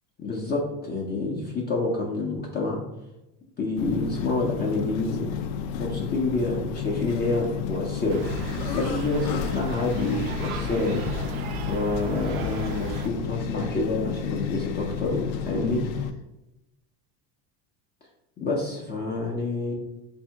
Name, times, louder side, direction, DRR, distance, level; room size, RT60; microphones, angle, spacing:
voice 1, 0.2-2.8 3.6-5.3 5.8-8.2 8.7-11.1 11.6-15.8 18.4-19.7, left 3 dB, 25° left, -2 dB, 0.6 m, -28 dB
sound 1, 3.8-16.1, left 7 dB, 75° left, 0.5 m, -32 dB
sound 2, 8.1-13.1, right 4 dB, 65° right, 0.5 m, -35 dB
3.7 x 2.7 x 4.3 m, 0.92 s
cardioid pair, 145°, 42 cm